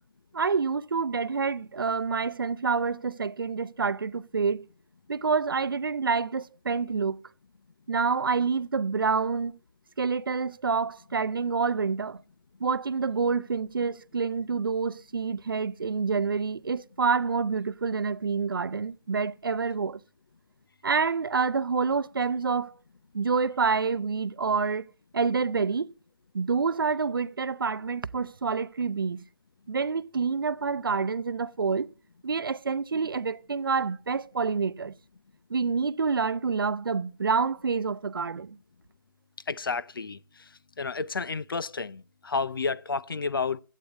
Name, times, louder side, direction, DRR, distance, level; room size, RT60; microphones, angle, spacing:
voice 1, 0.3-4.7 5.1-7.2 7.9-9.6 10.0-12.2 12.6-20.0 20.8-22.7 23.1-24.9 25.1-25.9 26.3-29.2 29.7-31.9 32.2-34.9 35.5-38.6, right 5 dB, 70° right, 0.7 m, -27 dB
voice 2, 39.5-40.2 40.8-43.6, left 4 dB, 70° left, 0.7 m, -31 dB
11.5 x 8.5 x 7.4 m
hypercardioid pair, 165°, 12 cm